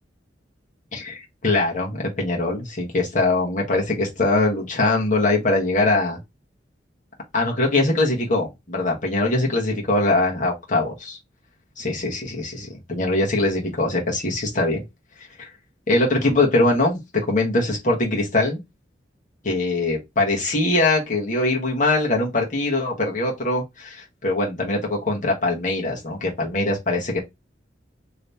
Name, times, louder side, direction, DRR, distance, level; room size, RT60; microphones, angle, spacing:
voice 1, 0.9-6.2 7.3-11.2 11.8-14.8 15.4-15.5 15.9-17.0 17.3-18.6 19.4-27.2, left 2 dB, 45° left, 1.2 m, -22 dB
3.2 x 3.1 x 2.7 m
head